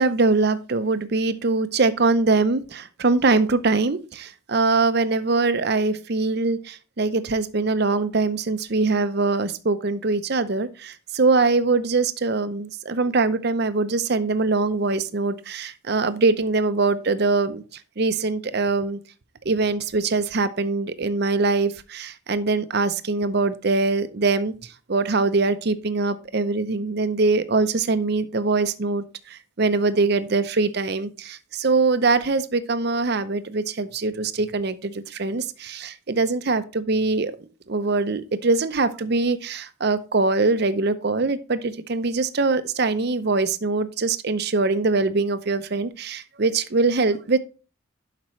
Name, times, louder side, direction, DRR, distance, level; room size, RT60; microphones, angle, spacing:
voice 1, 0.0-19.0 19.4-37.3 37.7-47.4, right 3 dB, 50° right, 12 dB, 0.6 m, -23 dB
11.5 x 5.1 x 3.1 m, 0.34 s
head